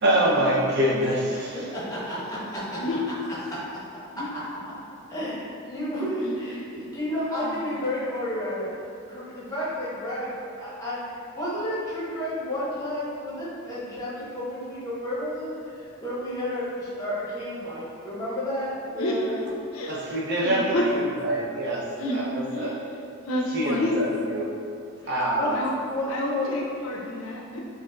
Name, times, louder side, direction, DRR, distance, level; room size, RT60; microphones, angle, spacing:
voice 1, 0.0-1.6 19.9-21.8 22.1-22.8 23.5-24.5 25.1-25.6, right 1 dB, 50° right, -5 dB, 0.6 m, -25 dB
voice 2, 1.5-2.8 4.2-4.3 5.1-8.8 9.1-10.3 10.6-19.3 25.4-25.6 25.9-26.5 26.9-27.0, left 1 dB, 15° left, -8 dB, 0.9 m, -31 dB
voice 3, 6.2-6.6 7.4-7.6 19.0-19.2 19.7-20.0 20.4-20.9 22.0-22.2 22.5-22.8 23.3-24.0 25.0-25.2 25.5-25.7 26.1-27.6, left 1 dB, 60° left, -1 dB, 0.5 m, -29 dB
5.0 x 2.5 x 2.3 m, 2.4 s
head